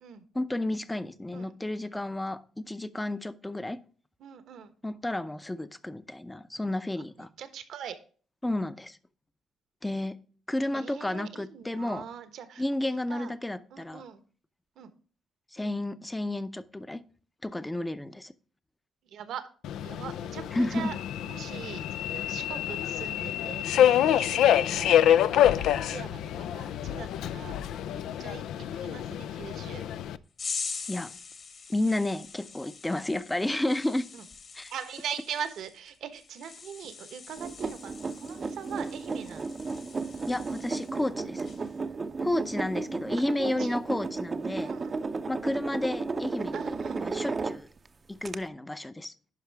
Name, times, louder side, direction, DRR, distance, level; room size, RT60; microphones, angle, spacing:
voice 1, 0.3-3.8 4.8-7.3 8.4-9.0 9.8-10.2 10.5-12.0 12.6-14.0 15.5-17.0 17.4-18.3 20.5-20.9 30.9-31.1 31.7-34.1 34.5-34.7 40.3-41.5 42.2-44.7 45.3-47.7 48.1-49.1, left 1 dB, 10° left, 13 dB, 0.6 m, -31 dB
voice 2, 4.2-4.7 7.4-8.0 10.7-13.3 13.7-14.2 14.8-14.9 15.6-15.7 19.1-19.5 19.8-20.9 21.2-26.2 26.5-27.6 27.9-29.9 34.1-34.2 34.7-39.5 43.4-43.8 44.6-45.0 46.5-47.2, right 8 dB, 75° right, 11 dB, 1.1 m, -41 dB
Subway metro underground, 19.6-30.2, left 11 dB, 80° left, 0.4 m, -26 dB
sound 1, 30.4-41.1 41.4-41.8, left 5 dB, 50° left, 1.8 m, -43 dB
sound 2, 37.4-47.9 48.3-48.4, right 4 dB, 35° right, 0.6 m, -34 dB
11.0 x 5.4 x 3.4 m, 0.42 s
cardioid pair, 90°, 0 cm